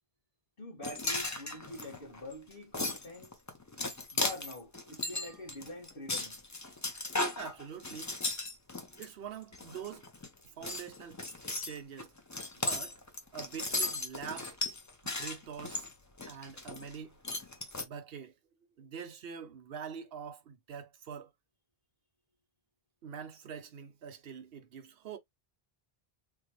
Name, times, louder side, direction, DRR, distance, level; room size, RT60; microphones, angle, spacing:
voice 1, 0.6-3.4 4.1-6.4, left 1 dB, 60° left, 2.2 m, -45 dB
sound 1, 0.8-9.1 9.5-10.3 10.6-17.0 17.2-17.9, left 2 dB, 20° left, 0.5 m, -36 dB
voice 2, 7.4-8.2 9.0-10.1 10.4-11.2 11.6-12.1 12.6-13.0 13.3-14.5 15.0-15.9 16.3-17.2 17.8-18.3 18.8-21.3 23.0-25.2, right 7 dB, 70° right, 0.9 m, -45 dB
3.8 x 2.2 x 3.1 m
omnidirectional pair, 1.1 m